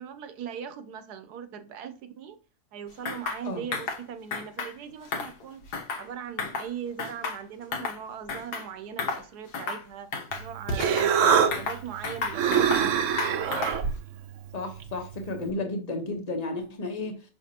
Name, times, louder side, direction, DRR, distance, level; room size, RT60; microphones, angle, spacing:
voice 1, 0.0-2.4 2.7-5.6 5.9-10.1 10.4-11.1 11.6-13.6, right 8 dB, 80° right, 1.3 m, -40 dB
sound 1, 3.1-3.4 3.7-4.0 4.3-4.7 5.1-6.1 6.4-6.7 7.0-8.0 8.3-8.7 9.0-9.2 9.5-9.8 10.1-11.1 11.5-12.9 13.2-13.9, left 4 dB, 85° left, 1.7 m, -32 dB
Human voice, 10.3-15.5, right 7 dB, 60° right, 0.9 m, -26 dB
voice 2, 14.5-17.2, left 2 dB, 30° left, 1.1 m, -33 dB
6.2 x 5.8 x 2.9 m
omnidirectional pair, 1.7 m